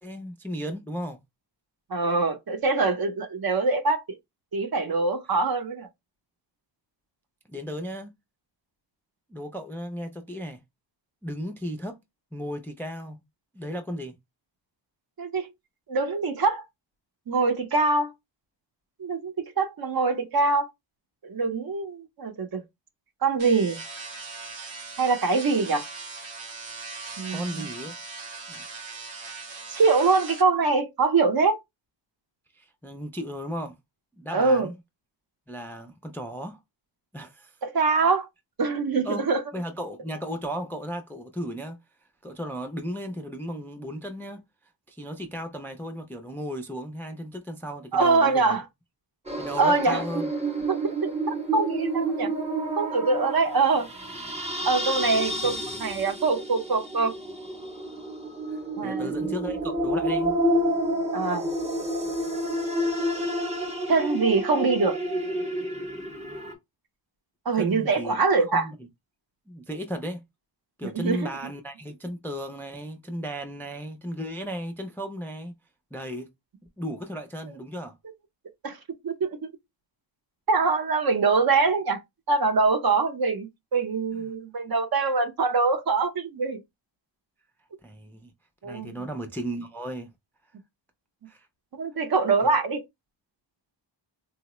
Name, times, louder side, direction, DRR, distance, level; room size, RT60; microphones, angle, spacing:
voice 1, 0.0-1.2 7.5-8.1 9.3-10.6 11.2-12.0 12.3-13.2 13.5-14.1 27.3-27.9 28.5-28.6 32.5-33.7 34.2-34.7 35.5-36.6 37.1-37.5 39.0-39.3 39.5-41.8 42.2-44.4 44.9-48.6 49.4-50.3 55.4-55.5 58.5-60.4 67.6-68.1 68.5-68.8 69.5-70.2 70.8-75.5 75.9-76.3 76.8-77.9 84.1-84.3 87.8-88.3 88.6-90.1 91.3-91.5, equal, 5° left, 0.3 m, -35 dB
voice 2, 1.9-4.0 4.5-5.9 15.2-15.5 15.9-16.6 17.3-18.1 19.0-20.7 21.2-22.6 23.2-23.8 25.0-25.9 27.2-27.7 29.7-31.6 34.3-34.7 37.6-38.3 38.6-39.4 47.9-48.6 49.6-50.0 50.7-52.3 52.8-53.9 54.6-57.1 58.8-59.3 61.1-61.5 63.9-65.0 67.5-68.7 70.8-71.3 78.6-78.8 79.0-79.5 80.5-82.0 82.3-86.6 88.6-89.0 91.8-92.8, right 4 dB, 50° right, 0.7 m, -24 dB
sound 1, 23.4-30.4, right 4 dB, 90° right, 1.2 m, -39 dB
sound 2, 49.3-66.5, right 1 dB, 15° right, 0.7 m, -29 dB
3.8 x 2.0 x 2.9 m
wide cardioid pair, 125°, 46 cm